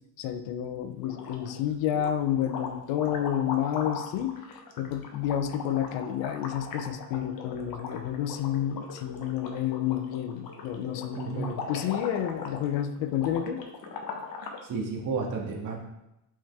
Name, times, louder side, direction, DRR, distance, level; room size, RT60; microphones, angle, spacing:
voice 1, 0.2-13.6, left 10 dB, 80° left, 10 dB, 0.8 m, -30 dB
sound 1, 1.0-1.6 1.9-14.7, left 5 dB, 50° left, 1.3 m, -39 dB
voice 2, 11.1-11.5 14.6-15.8, right 4 dB, 45° right, -1 dB, 1.9 m, -32 dB
8.3 x 5.7 x 3.6 m, 0.86 s
cardioid pair, 140°, 43 cm